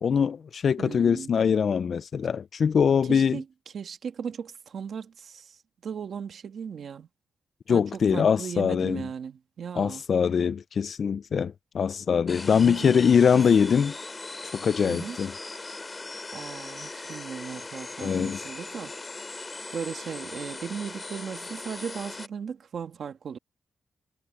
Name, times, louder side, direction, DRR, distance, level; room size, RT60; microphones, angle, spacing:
voice 1, 0.0-3.4 7.7-9.0 9.8-13.9 14.5-15.3 18.0-18.4, left 7 dB, 60° left, 0.4 m, -23 dB
voice 2, 0.8-1.3 3.0-3.4 3.7-7.1 7.7-10.0 12.5-13.4 14.9-15.2 16.3-18.9 19.7-23.4, right 7 dB, 75° right, 1.6 m, -37 dB
sound 1, 12.3-22.3, left 3 dB, 25° left, 2.8 m, -39 dB
wide cardioid pair, 125°, 0 cm